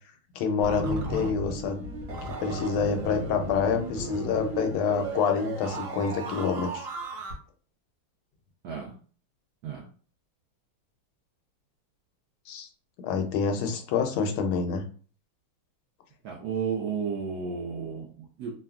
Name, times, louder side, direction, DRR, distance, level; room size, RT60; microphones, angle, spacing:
voice 1, 0.3-1.9 2.4-6.9 12.5-12.7 13.0-14.8, left 6 dB, 80° left, 5 dB, 1.4 m, -27 dB
sound 1, 0.6-7.3, right 2 dB, 70° right, 1.5 m, -36 dB
voice 2, 16.2-18.5, right 6 dB, 90° right, 0 dB, 0.8 m, -32 dB
3.4 x 2.2 x 2.3 m, 0.40 s
omnidirectional pair, 2.3 m